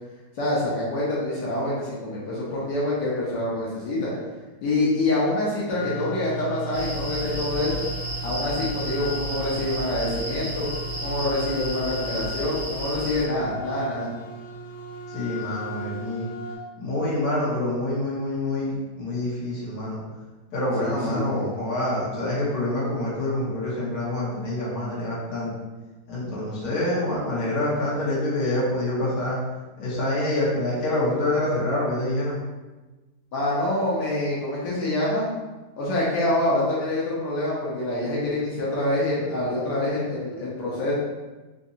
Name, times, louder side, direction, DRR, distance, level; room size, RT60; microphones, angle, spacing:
voice 1, 0.4-4.1 4.6-7.8 8.2-10.7 11.0-14.1 20.8-21.5 33.3-35.3 35.8-40.9, left 1 dB, 85° left, -7 dB, 1.4 m, -26 dB
sound 1, 5.7-16.6, right 2 dB, 30° right, 0.5 m, -37 dB
sound 2, 6.7-13.3, left 1 dB, 45° right, 1.0 m, -33 dB
voice 2, 15.1-16.3 16.8-20.0 20.5-25.5 26.1-29.4 29.8-32.4, left 1 dB, 65° left, -7 dB, 1.5 m, -26 dB
3.9 x 2.5 x 2.7 m, 1.2 s
omnidirectional pair, 1.8 m